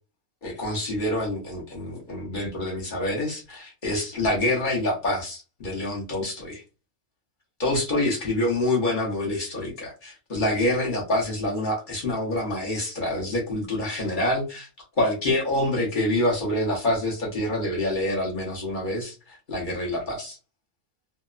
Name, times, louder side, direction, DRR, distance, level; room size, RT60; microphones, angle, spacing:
voice 1, 0.4-6.6 7.6-14.7 15.0-20.4, left 1 dB, 40° left, -2 dB, 0.9 m, -26 dB
2.9 x 2.0 x 2.4 m, 0.31 s
omnidirectional pair, 1.4 m